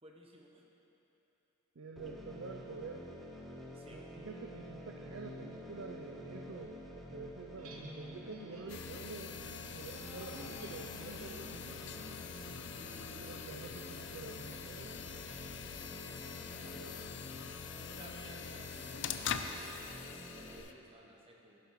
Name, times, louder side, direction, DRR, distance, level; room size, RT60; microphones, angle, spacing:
voice 1, 0.0-0.6 3.7-4.0 12.7-13.6 15.1-16.0 16.4-17.0 17.8-21.6, right 1 dB, 25° right, -1 dB, 1.0 m, -57 dB
voice 2, 1.8-3.1 3.9-11.5 13.0-14.9 16.6-17.0, right 4 dB, 65° right, 2 dB, 0.5 m, -48 dB
sound 1, 2.0-20.6, left 1 dB, ahead, 0.8 m, -50 dB
sound 2, 7.6-13.5, right 1 dB, 80° right, 1.2 m, -53 dB
sound 3, 8.7-20.7, left 7 dB, 55° left, 0.4 m, -44 dB
15.0 x 10.5 x 3.1 m, 3.0 s
head